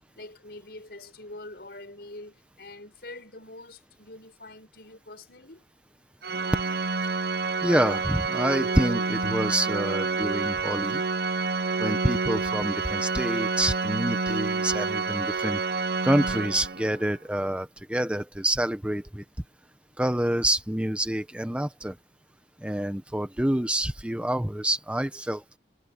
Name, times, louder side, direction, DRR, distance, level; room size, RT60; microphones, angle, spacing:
voice 1, 0.0-5.6, left 2 dB, 60° left, 7.2 m, -45 dB
Organ, 6.2-17.0, right 4 dB, 60° right, 0.8 m, -28 dB
voice 2, 7.6-11.0 11.8-15.6 16.0-19.2 20.0-21.9 22.6-25.6, right 1 dB, 5° right, 0.8 m, -27 dB
head